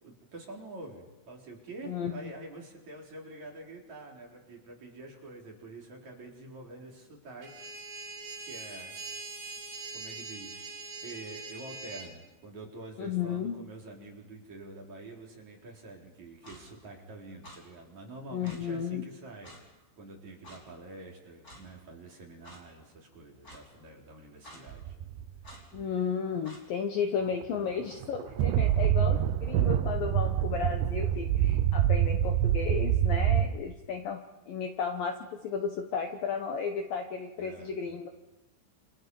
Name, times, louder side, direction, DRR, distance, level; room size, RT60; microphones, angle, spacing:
voice 1, 0.0-7.6 8.4-9.0 9.9-10.7 11.0-19.5 20.0-25.0 37.4-37.8, right 2 dB, 40° right, -2 dB, 4.9 m, -47 dB
voice 2, 1.9-2.2 13.0-13.6 18.3-19.1 25.7-38.1, left 6 dB, 65° left, 4 dB, 2.4 m, -33 dB
sound 1, 7.4-12.1, right 3 dB, 55° right, 5.5 m, -42 dB
Clock, 16.4-16.6 17.4-17.6 18.4-18.6 19.4-19.6 20.4-20.6 21.4-21.6 22.4-22.6 23.4-23.6 24.4-24.6 25.4-25.6 26.4-26.6, left 1 dB, 20° left, 5.4 m, -49 dB
sound 2, 24.7-25.3 27.4-27.5 28.0-33.4, right 11 dB, 75° right, 2.6 m, -26 dB
29.0 x 28.0 x 5.5 m, 1.0 s
omnidirectional pair, 5.4 m